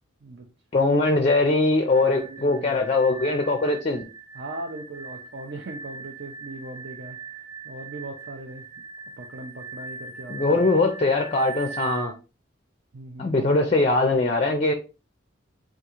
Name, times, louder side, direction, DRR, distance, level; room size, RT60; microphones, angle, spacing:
voice 1, 0.7-4.0 10.3-12.1 13.2-14.7, left 2 dB, 30° left, 0.4 m, -21 dB
sound 1, 1.9-12.1, right 4 dB, 15° right, 0.8 m, -40 dB
voice 2, 2.0-2.8 4.3-7.2 7.6-8.7 9.2-10.7 12.9-13.5, right 2 dB, 60° right, 0.5 m, -39 dB
3.6 x 2.4 x 2.9 m
head